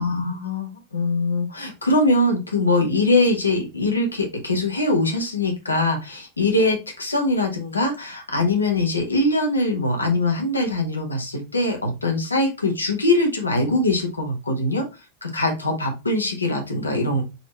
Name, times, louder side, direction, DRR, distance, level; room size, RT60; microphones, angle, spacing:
voice 1, 0.0-14.9 15.2-17.2, left 2 dB, 80° left, 3 dB, 1.1 m, -22 dB
4.1 x 3.0 x 3.2 m, 0.27 s
figure-of-eight pair, 90°, 0 cm